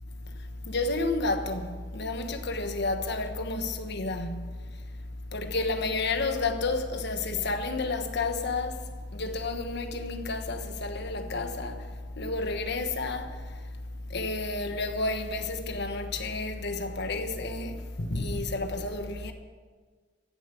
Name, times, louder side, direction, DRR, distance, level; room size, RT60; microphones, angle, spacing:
voice 1, 0.2-4.9 5.3-13.7 14.1-19.3, left 3 dB, 60° left, 1.3 m, -31 dB
15.0 x 7.3 x 8.4 m
head